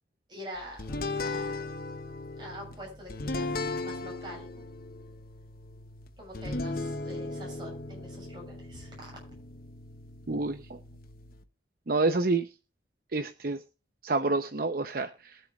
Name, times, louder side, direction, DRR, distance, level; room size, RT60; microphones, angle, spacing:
voice 1, 0.3-1.7 2.4-4.6 6.2-9.1, equal, 25° right, -1 dB, 7.1 m, -45 dB
sound 1, 0.8-11.4, left 2 dB, 50° left, 0.9 m, -37 dB
voice 2, 10.3-10.8 11.9-12.5 13.1-13.6 14.0-15.4, right 3 dB, 50° right, 8 dB, 0.7 m, -28 dB
22.5 x 7.7 x 2.4 m, 0.31 s
head